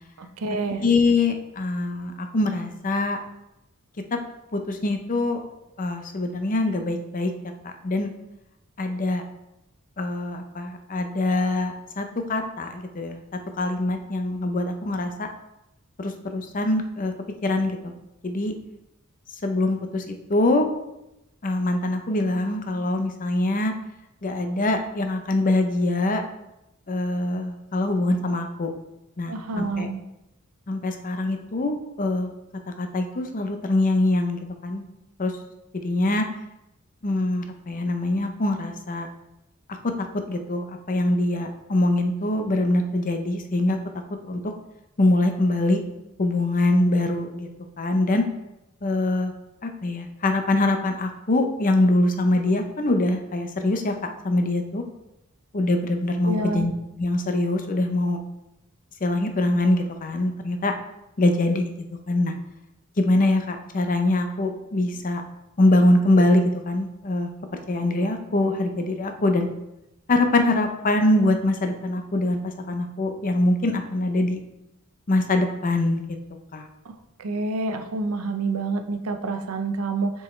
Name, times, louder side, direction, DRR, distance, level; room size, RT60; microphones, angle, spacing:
voice 1, 0.2-0.8 29.3-30.0 56.3-56.7 77.2-80.1, right 3 dB, 85° right, 7 dB, 0.6 m, -27 dB
voice 2, 0.8-3.2 4.1-4.2 4.5-5.4 5.8-7.3 7.6-8.1 8.8-9.2 10.0-13.2 13.6-15.3 16.0-17.1 17.4-17.9 18.2-18.5 19.4-20.0 20.3-20.7 21.4-23.7 24.2-26.2 26.9-28.7 29.2-29.9 30.7-32.3 32.8-34.8 35.2-35.3 35.8-36.2 37.0-39.1 40.3-43.8 44.2-44.5 45.0-45.8 46.2-47.5 47.8-48.2 48.8-49.3 49.6-53.9 54.2-54.8 55.5-56.7 57.0-58.2 59.0-60.7 61.2-61.7 62.1-62.3 63.0-65.2 65.6-67.3 67.7-69.5 70.1-74.4 75.1-76.0 76.5-76.7, left 2 dB, 40° left, 6 dB, 0.6 m, -23 dB
7.4 x 4.5 x 3.2 m, 0.91 s
head